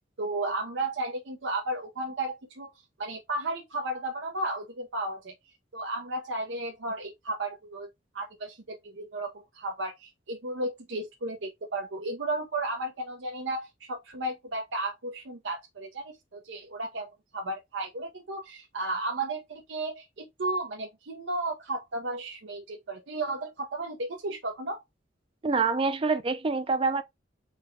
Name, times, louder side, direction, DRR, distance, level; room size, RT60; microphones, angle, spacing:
voice 1, 0.2-2.7 3.0-5.3 5.7-7.9 8.1-24.8, right 2 dB, 85° right, 0.7 m, -34 dB
voice 2, 25.4-27.0, right 4 dB, 30° right, 0.4 m, -26 dB
4.1 x 2.2 x 4.4 m
head